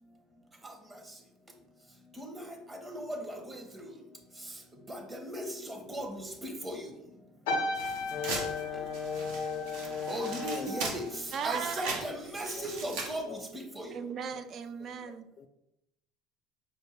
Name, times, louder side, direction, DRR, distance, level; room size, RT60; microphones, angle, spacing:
voice 1, 2.7-3.6 4.9-6.8 10.1-11.1 11.4-13.9, right 1 dB, 20° right, 4 dB, 0.8 m, -37 dB
sound 1, 7.5-12.1 12.4-12.8, left 2 dB, 80° left, 0.6 m, -37 dB
sound 2, 7.7-13.2, right 3 dB, 75° right, 0.8 m, -40 dB
voice 2, 8.1-10.8 12.6-12.7 13.3-13.4 15.0-15.5, left 7 dB, 45° left, 8 dB, 0.3 m, -37 dB
voice 3, 11.3-12.0 13.9-15.3, right 7 dB, 45° right, 10 dB, 0.4 m, -37 dB
4.9 x 2.2 x 3.2 m, 0.83 s
hypercardioid pair, 85°, 0 cm